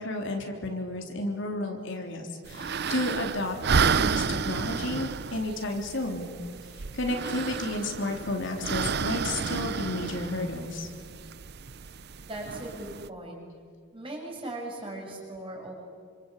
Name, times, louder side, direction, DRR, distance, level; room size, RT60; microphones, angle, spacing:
voice 1, 0.0-3.6 3.8-6.3 6.9-10.9, left 2 dB, 55° left, 3 dB, 3.6 m, -32 dB
sound 1, 2.5-13.1, right 5 dB, 50° right, 0.6 m, -31 dB
voice 2, 12.2-13.4 13.9-15.7, right 1 dB, 25° right, 0 dB, 7.1 m, -38 dB
27.0 x 26.5 x 8.4 m, 2.2 s
head